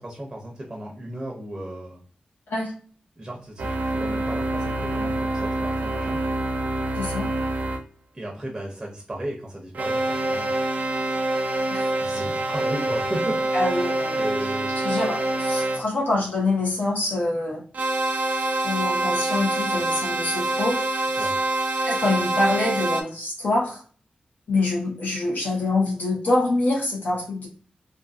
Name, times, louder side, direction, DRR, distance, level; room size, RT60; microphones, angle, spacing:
voice 1, 0.0-2.0 3.2-6.2 8.1-10.6 12.0-13.4 14.2-14.7 21.2-21.4, right 1 dB, 15° right, -1 dB, 0.5 m, -34 dB
sound 1, 3.6-7.8 9.7-15.8 17.7-23.0, right 2 dB, 70° right, 0.4 m, -26 dB
voice 2, 6.9-7.3 11.7-11.9 13.5-14.2 14.8-17.6 18.6-20.8 21.2-21.3 21.8-23.8 24.5-27.5, left 2 dB, 80° left, -2 dB, 1.0 m, -25 dB
2.5 x 2.5 x 2.3 m, 0.43 s
wide cardioid pair, 170°, 3 cm